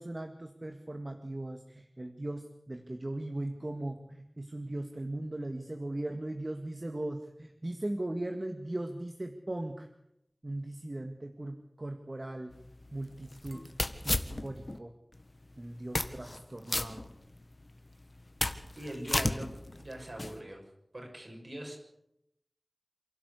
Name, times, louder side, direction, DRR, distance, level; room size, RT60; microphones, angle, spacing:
voice 1, 0.0-9.9 10.4-12.6 12.9-13.6 14.0-14.9 15.6-17.1, right 1 dB, 45° right, 5 dB, 1.8 m, -38 dB
sound 1, 12.5-14.8 15.2-15.3 15.8-16.4 16.7-17.6 18.0-20.4, left 2 dB, 50° left, 1.6 m, -34 dB
voice 2, 18.8-20.6 20.9-21.8, right 1 dB, 60° right, 1 dB, 6.8 m, -42 dB
27.5 x 12.5 x 8.3 m, 0.81 s
wide cardioid pair, 50°, 0 cm